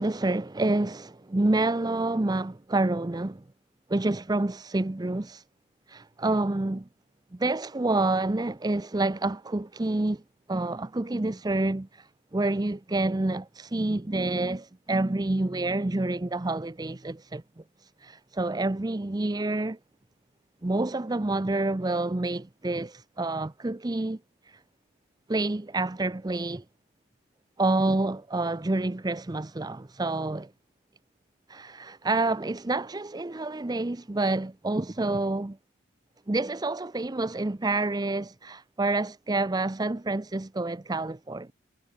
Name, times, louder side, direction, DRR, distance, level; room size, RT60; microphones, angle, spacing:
voice 1, 0.0-3.4 3.9-5.4 5.9-6.8 7.3-10.2 10.5-17.4 18.0-19.8 20.6-24.2 24.5-24.6 25.3-26.6 27.6-30.5 31.5-35.6 36.3-41.5, right 2 dB, 20° right, 0.5 m, -28 dB
head